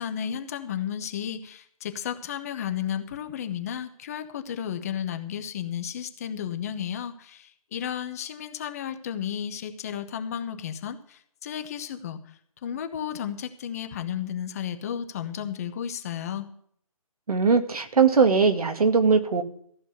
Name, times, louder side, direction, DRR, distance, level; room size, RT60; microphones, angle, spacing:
voice 1, 0.0-16.5, left 9 dB, 25° left, 8 dB, 1.0 m, -33 dB
voice 2, 17.3-19.4, right 5 dB, 75° right, 6 dB, 2.0 m, -20 dB
14.5 x 6.0 x 8.1 m, 0.67 s
hypercardioid pair, 165°, 19 cm